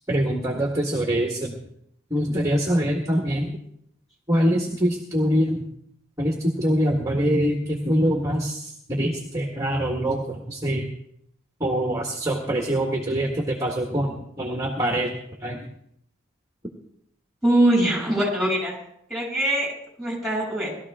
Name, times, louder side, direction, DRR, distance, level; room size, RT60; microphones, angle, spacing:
voice 1, 0.1-1.5 2.1-3.5 4.3-5.6 6.2-10.9 11.6-15.1 15.4-15.6, equal, 15° right, 1 dB, 1.7 m, -24 dB
voice 2, 17.4-18.8 19.1-19.7 20.0-20.8, right 1 dB, ahead, -3 dB, 7.0 m, -22 dB
20.0 x 13.5 x 3.7 m, 0.73 s
head